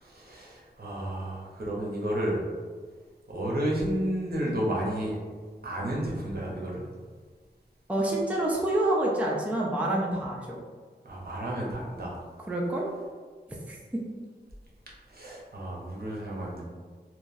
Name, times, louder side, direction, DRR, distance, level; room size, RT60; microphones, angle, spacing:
voice 1, 0.0-2.4 3.3-5.2 5.6-6.8 11.0-12.2 15.1-16.6, right 1 dB, 55° right, -4 dB, 0.8 m, -31 dB
voice 2, 7.9-10.6 12.5-12.9 13.7-14.0, right 1 dB, 10° right, -3 dB, 0.4 m, -27 dB
2.9 x 2.3 x 2.6 m, 1.5 s
wide cardioid pair, 50°, 18 cm